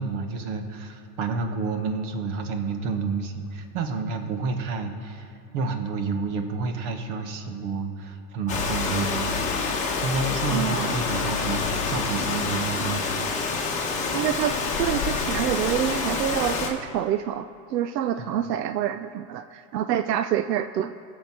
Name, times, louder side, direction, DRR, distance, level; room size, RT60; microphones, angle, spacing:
voice 1, 0.0-9.4 10.0-13.1 18.2-18.4, right 4 dB, 50° right, 6 dB, 1.5 m, -30 dB
Rain, 8.5-16.7, left 4 dB, 15° left, 1.3 m, -27 dB
voice 2, 10.5-10.9 14.1-20.9, right 10 dB, 85° right, 10 dB, 0.6 m, -27 dB
19.5 x 6.9 x 4.4 m, 2.5 s
supercardioid pair, 150°, 48 cm